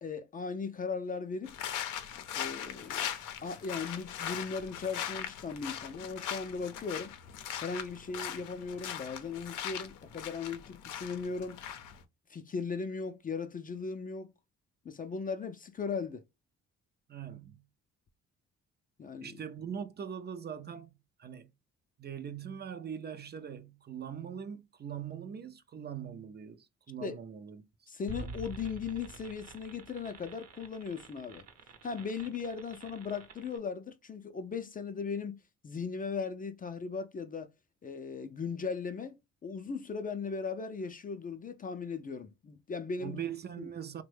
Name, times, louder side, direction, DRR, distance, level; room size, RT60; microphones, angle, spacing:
voice 1, 0.0-1.6 2.3-3.1 3.4-7.1 7.6-11.6 12.3-14.3 14.8-16.2 19.0-19.3 27.0-27.2 27.9-31.4 31.8-35.4 35.6-37.5 37.8-39.1 39.4-43.2 43.6-43.7, left 5 dB, 30° left, 0.4 m, -38 dB
sound 1, 1.5-12.0, left 9 dB, 85° left, 0.6 m, -40 dB
voice 2, 17.1-17.6 19.2-20.9 21.2-21.5 22.0-27.6 43.0-44.0, right 8 dB, 35° right, 0.4 m, -41 dB
sound 2, 28.1-33.6, right 4 dB, 55° right, 0.8 m, -47 dB
3.0 x 2.2 x 3.2 m
cardioid pair, 90°, 30 cm